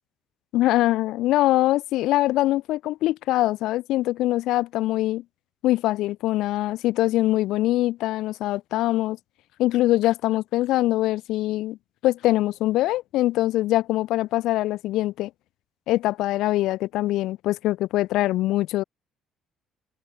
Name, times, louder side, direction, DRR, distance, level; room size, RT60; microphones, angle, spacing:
voice 1, 0.5-5.2 5.6-9.2 9.6-11.8 12.0-15.3 15.9-18.8, left 16 dB, 75° left, 0.6 m, -23 dB
hypercardioid pair, 60°, 0 cm